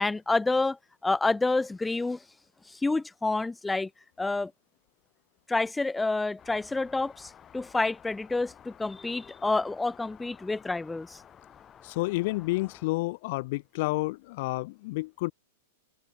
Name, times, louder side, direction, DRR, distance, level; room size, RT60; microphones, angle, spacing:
voice 1, 0.0-2.2 2.7-3.9 4.2-4.5 5.5-11.2, left 3 dB, 10° left, 0.4 m, -28 dB
sound 1, 6.4-12.9, left 9 dB, 25° left, 4.8 m, -53 dB
voice 2, 11.8-15.3, left 22 dB, 55° left, 0.6 m, -30 dB
open air
hypercardioid pair, 115°, 0 cm